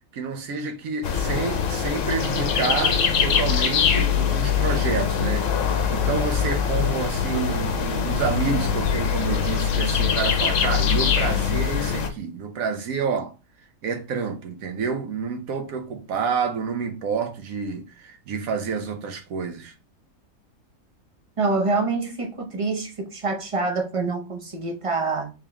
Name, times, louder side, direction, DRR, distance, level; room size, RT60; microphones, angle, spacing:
voice 1, 0.1-13.3 13.8-19.7, right 5 dB, 75° right, 1.2 m, -29 dB
sound 1, 1.0-12.1, left 7 dB, 65° left, 1.0 m, -23 dB
voice 2, 21.4-25.3, right 3 dB, 30° right, 0.7 m, -26 dB
3.5 x 3.5 x 2.9 m
omnidirectional pair, 1.5 m